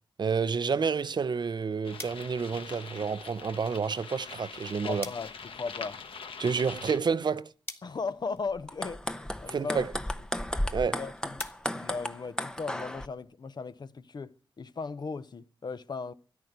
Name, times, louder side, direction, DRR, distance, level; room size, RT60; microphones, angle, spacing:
voice 1, 0.2-5.0 6.4-7.5 9.5-9.9 10.7-11.0, right 5 dB, 55° right, 0.7 m, -29 dB
sound 1, 1.8-7.0, left 5 dB, 85° left, 1.3 m, -43 dB
sound 2, 2.0-12.7, left 2 dB, 25° left, 1.9 m, -51 dB
voice 2, 4.9-6.0 7.8-9.0 9.4-9.9 10.9-11.4 11.7-16.1, left 4 dB, 55° left, 0.8 m, -37 dB
sound 3, 8.6-13.1, left 1 dB, 10° left, 0.8 m, -34 dB
13.5 x 10.5 x 8.0 m
wide cardioid pair, 90°, 9 cm